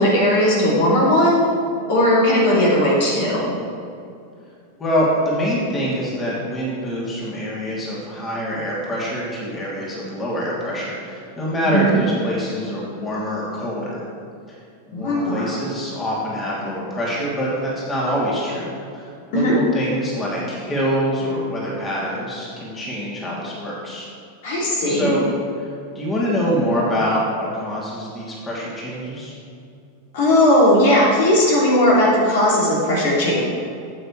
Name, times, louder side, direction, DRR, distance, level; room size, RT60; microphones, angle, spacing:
voice 1, 0.0-1.4 1.9-3.5 11.7-11.8 14.9-15.4 19.3-19.5 24.4-25.1 30.1-33.4, left 1 dB, 55° left, -6 dB, 2.9 m, -17 dB
voice 2, 4.8-14.0 14.5-14.6 14.9-24.1 24.9-25.2 25.6-25.7 25.9-29.3, equal, 20° left, -6 dB, 3.0 m, -25 dB
15.0 x 8.7 x 3.3 m, 2.4 s
figure-of-eight pair, 90°, 0 cm